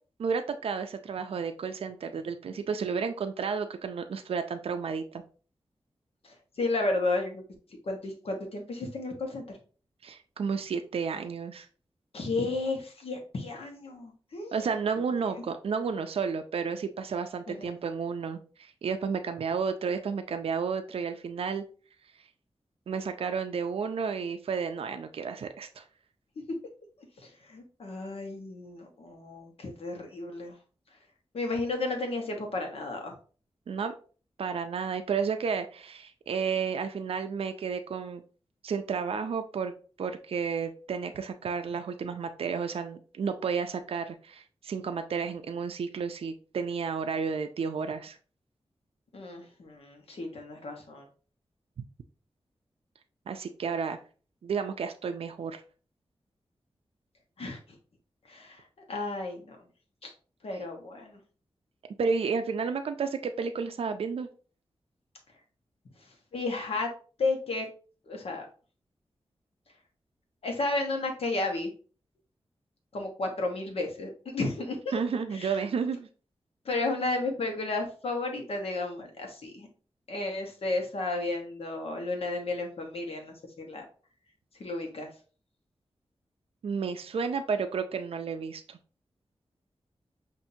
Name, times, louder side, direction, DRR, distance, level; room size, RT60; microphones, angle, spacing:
voice 1, 0.2-5.2 10.0-11.7 14.5-21.6 22.9-25.8 33.7-33.9 34.4-38.2 38.6-39.7 40.0-48.2 53.3-54.0 54.4-55.6 62.0-64.3 74.9-76.1 86.6-88.8, right 5 dB, 75° right, 7 dB, 0.4 m, -32 dB
voice 2, 6.2-7.4 7.9-9.4 12.1-14.7 15.3-15.4 17.5-17.8 27.2-30.5 31.3-33.1 49.1-51.0 57.4-57.6 58.3-58.6 58.9-59.6 60.0-60.1 60.4-61.2 66.3-66.9 67.2-67.7 68.1-68.5 70.4-71.7 72.9-75.0 75.3-75.7 76.6-79.7 80.1-83.8 84.6-85.1, left 2 dB, 80° left, 3 dB, 1.0 m, -33 dB
5.7 x 2.6 x 2.7 m, 0.38 s
wide cardioid pair, 75°, 10 cm